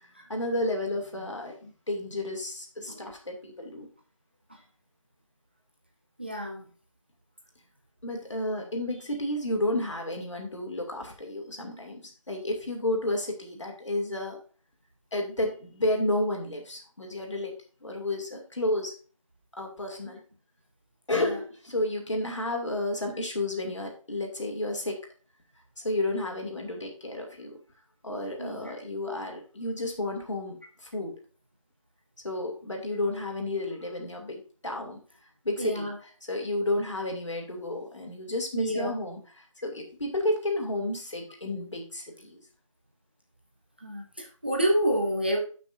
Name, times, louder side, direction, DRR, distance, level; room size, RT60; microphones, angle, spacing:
voice 1, 0.0-3.9 8.0-14.4 15.1-17.5 17.8-18.9 19.6-20.2 21.1-25.0 25.8-27.6 28.0-31.2 32.2-35.0 35.4-42.4, left 1 dB, 60° left, 2 dB, 2.7 m, -31 dB
voice 2, 6.2-6.7 20.0-20.1 28.4-28.7 35.6-35.9 38.5-38.9 43.8-45.4, equal, 20° right, 0 dB, 0.7 m, -29 dB
12.5 x 6.0 x 2.7 m, 0.39 s
figure-of-eight pair, 175°, 17 cm